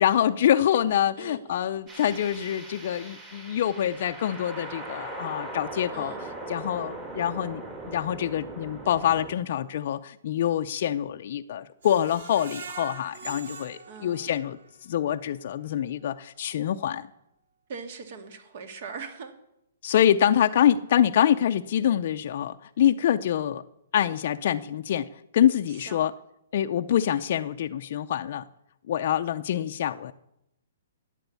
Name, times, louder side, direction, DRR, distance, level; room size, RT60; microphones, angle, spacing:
voice 1, 0.0-6.1 6.5-17.1 19.8-23.6 23.9-25.1 25.3-26.1 26.5-28.4 28.9-30.1, left 10 dB, 50° left, 7 dB, 0.5 m, -25 dB
voice 2, 1.2-1.6 5.9-6.2 13.9-14.4 17.7-19.3 25.7-26.1, right 5 dB, 50° right, 8 dB, 2.0 m, -41 dB
sound 1, 1.9-9.3, right 2 dB, 20° right, 2.7 m, -40 dB
Screech, 11.8-14.8 15.2-15.3 15.7-15.8, right 5 dB, 65° right, 1.5 m, -43 dB
12.0 x 9.1 x 8.3 m, 0.82 s
hypercardioid pair, 155°, 0 cm